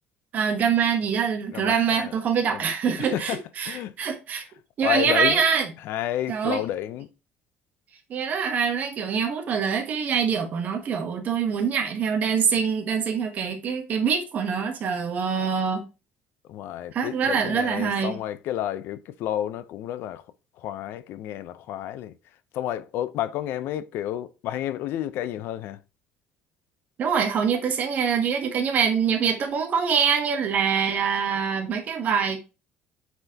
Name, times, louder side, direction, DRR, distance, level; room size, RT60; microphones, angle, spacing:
voice 1, 0.3-4.4 4.8-5.7 6.3-6.6 8.1-15.8 16.9-18.2 27.0-32.4, right 6 dB, 40° right, 1.1 m, -24 dB
voice 2, 1.5-2.1 2.5-2.7 3.0-3.4 3.7-3.9 4.8-5.4 5.8-7.1 16.5-20.2 20.6-22.1 22.5-25.8, left 12 dB, 60° left, 0.6 m, -30 dB
8.0 x 4.3 x 2.8 m
cardioid pair, 160°, 4 cm